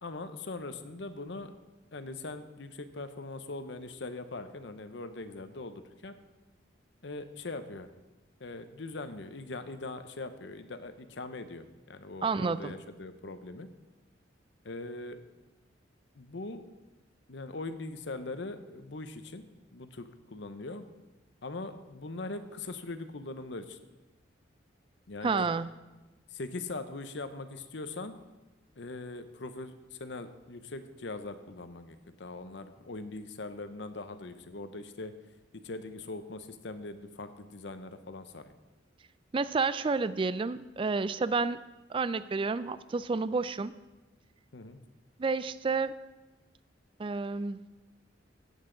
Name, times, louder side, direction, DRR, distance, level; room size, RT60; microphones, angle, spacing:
voice 1, 0.0-1.5 1.9-6.1 7.0-7.9 8.4-13.7 14.6-15.2 16.1-16.6 17.3-19.4 19.7-20.8 21.4-23.8 25.1-25.5 26.3-28.2 28.8-35.1 35.6-38.5 44.5-44.8, left 2 dB, 65° left, 10 dB, 0.8 m, -41 dB
voice 2, 12.2-12.8 25.2-25.7 39.3-41.6 41.9-43.7 45.2-46.0 47.0-47.6, right 4 dB, 25° right, 15 dB, 0.3 m, -30 dB
16.5 x 8.1 x 3.9 m, 1.1 s
head